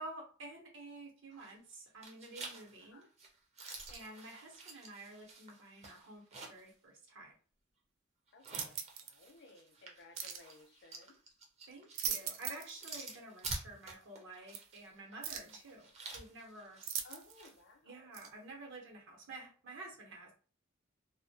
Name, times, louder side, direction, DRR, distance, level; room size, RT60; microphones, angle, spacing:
voice 1, 0.0-3.1 3.9-7.3 11.7-16.8 17.8-20.3, right 2 dB, 65° right, 1 dB, 0.8 m, -50 dB
sound 1, 1.3-1.7 2.0-6.7 7.1-7.2 8.3-17.6, right 3 dB, 35° right, 0.5 m, -49 dB
voice 2, 8.3-8.8 9.0-11.2 15.4-15.6 17.0-18.1, left 3 dB, 60° left, 4 dB, 0.5 m, -59 dB
sound 2, 8.4-9.2 10.2-10.5 11.7-12.8 13.1-13.2 14.5-14.6 15.2-15.6 16.8-17.5 18.1-18.3, right 8 dB, 90° right, 0.4 m, -40 dB
2.1 x 2.1 x 2.7 m, 0.39 s
head